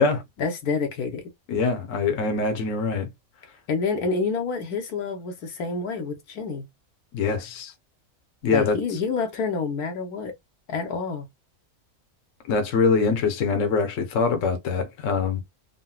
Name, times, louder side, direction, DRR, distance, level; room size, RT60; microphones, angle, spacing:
voice 1, 0.4-1.3 3.7-6.6 8.5-10.3 10.7-11.3, left 4 dB, 80° left, 1.4 m, -28 dB
voice 2, 1.5-3.1 7.1-7.7 8.4-8.8 12.5-15.4, left 4 dB, 65° left, 1.2 m, -23 dB
3.9 x 2.2 x 2.2 m
omnidirectional pair, 1.6 m